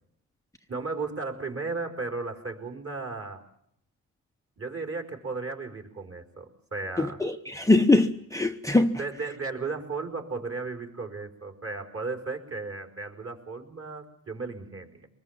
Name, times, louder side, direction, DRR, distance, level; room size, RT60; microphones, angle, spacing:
voice 1, 0.7-3.4 4.6-7.2 9.0-15.1, right 3 dB, 40° right, 4.8 m, -35 dB
voice 2, 7.0-9.0, left 2 dB, 10° left, 0.9 m, -22 dB
24.5 x 21.0 x 7.3 m
cardioid pair, 95°, 36 cm